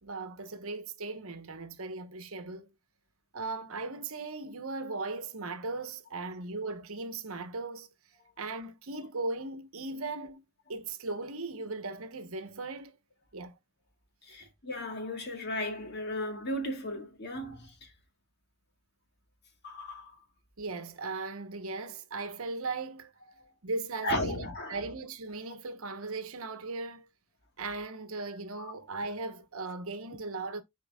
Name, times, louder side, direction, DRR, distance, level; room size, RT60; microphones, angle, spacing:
voice 1, 0.0-2.7 3.3-7.9 8.4-10.4 10.7-13.0 13.3-13.5 14.4-14.5 20.6-23.1 23.6-27.1 27.6-30.6, right 3 dB, 70° right, 1.1 m, -38 dB
voice 2, 14.2-17.9 19.6-20.1 23.4-23.5 24.0-24.8 28.6-28.7, left 1 dB, 50° left, 2.1 m, -35 dB
10.5 x 4.6 x 2.3 m
head